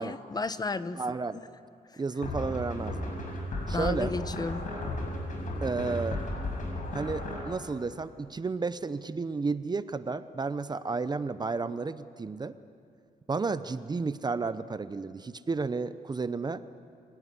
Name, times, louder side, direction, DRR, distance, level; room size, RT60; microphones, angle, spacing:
voice 1, 0.0-1.0 1.3-1.4 3.6-4.7, left 3 dB, 25° left, 13 dB, 0.9 m, -33 dB
voice 2, 0.9-1.4 2.0-3.0 3.7-4.1 5.6-6.2 6.9-12.6 13.3-16.6, right 4 dB, 25° right, 13 dB, 0.7 m, -32 dB
sound 1, 2.2-7.4, left 1 dB, 60° left, 6.5 m, -34 dB
27.0 x 18.0 x 9.7 m, 2.4 s
cardioid pair, 105°, 15 cm